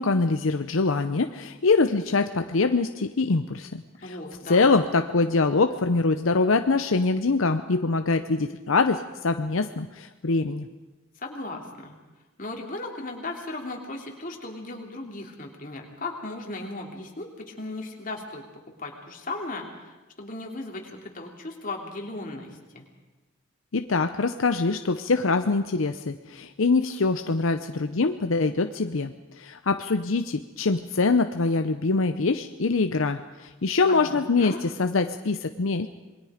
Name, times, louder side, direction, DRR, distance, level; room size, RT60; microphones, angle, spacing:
voice 1, 0.0-4.2 4.5-10.7 23.7-35.9, left 3 dB, 75° left, 8 dB, 0.7 m, -24 dB
voice 2, 4.0-4.7 11.2-12.0 12.4-18.4 18.8-22.5 22.7-22.8 33.9-34.6, left 2 dB, 40° left, 1 dB, 3.1 m, -36 dB
27.0 x 21.0 x 5.1 m, 1.2 s
head